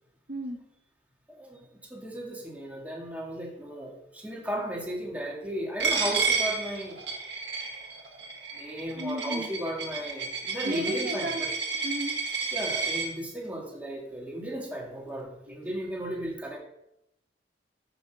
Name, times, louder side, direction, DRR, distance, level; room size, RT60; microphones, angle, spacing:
voice 1, 0.3-0.6 9.0-9.5 10.6-11.4 11.7-12.2, right 1 dB, 55° right, 3 dB, 1.3 m, -33 dB
voice 2, 1.3-7.0 8.5-11.5 12.5-16.6, equal, 10° right, -1 dB, 2.1 m, -35 dB
Coin (dropping), 5.8-13.1, right 4 dB, 85° right, 2.0 m, -31 dB
13.5 x 6.0 x 4.8 m, 0.80 s
head